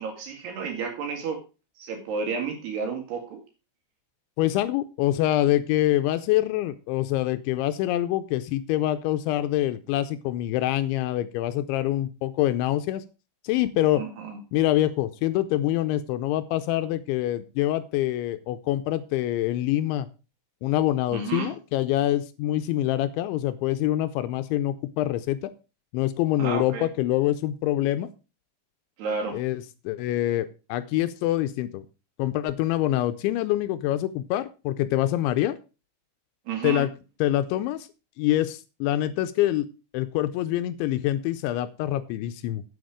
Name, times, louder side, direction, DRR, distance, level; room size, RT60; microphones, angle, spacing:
voice 1, 0.0-1.4 1.8-3.4 14.0-14.4 21.1-21.5 26.4-26.9 29.0-29.4 36.5-36.9, right 5 dB, 60° right, 3 dB, 4.0 m, -31 dB
voice 2, 4.4-13.0 13.4-14.0 14.5-20.1 20.6-25.5 25.9-28.1 29.3-31.8 32.2-35.6 36.6-36.9 37.2-37.9 38.2-39.7 39.9-42.6, left 14 dB, 80° left, 11 dB, 2.9 m, -25 dB
8.7 x 7.9 x 4.9 m, 0.31 s
omnidirectional pair, 5.5 m